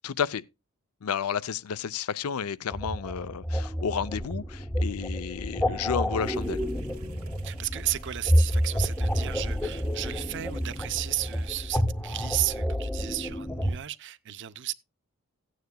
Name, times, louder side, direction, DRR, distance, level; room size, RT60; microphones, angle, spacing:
voice 1, 0.0-0.4 1.0-6.6, left 7 dB, 85° left, 0.5 m, -31 dB
sound 1, 2.7-13.8, equal, 5° left, 0.7 m, -29 dB
sound 2, 6.2-11.6, right 8 dB, 85° right, 2.1 m, -55 dB
voice 2, 7.4-14.7, right 15 dB, 55° right, 0.6 m, -33 dB
16.0 x 9.5 x 2.2 m
head